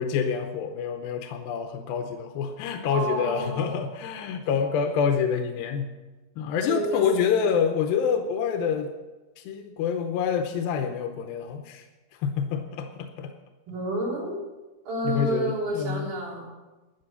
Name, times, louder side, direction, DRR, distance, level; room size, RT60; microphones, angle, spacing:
voice 1, 0.0-5.9 6.4-8.9 9.4-11.9 12.2-13.3 15.0-16.1, left 7 dB, 85° left, 5 dB, 2.7 m, -27 dB
voice 2, 2.9-3.7 6.7-7.0 13.7-14.4 14.9-16.5, right 1 dB, 85° right, -4 dB, 5.6 m, -29 dB
13.0 x 9.0 x 7.0 m, 1.2 s
omnidirectional pair, 4.1 m